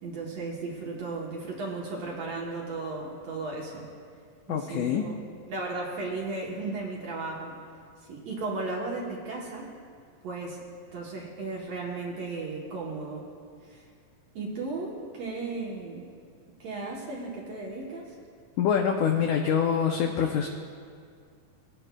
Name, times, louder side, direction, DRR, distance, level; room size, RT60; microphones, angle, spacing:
voice 1, 0.0-3.9 4.5-5.1 5.5-7.5 8.1-9.7 10.2-10.6 10.9-13.3 13.6-13.9 14.4-16.0 16.6-18.2, right 3 dB, 65° right, -3 dB, 1.8 m, -35 dB
voice 2, 4.5-5.0 18.6-20.5, left 7 dB, 85° left, 3 dB, 1.7 m, -25 dB
20.5 x 9.1 x 2.2 m, 2.2 s
omnidirectional pair, 4.1 m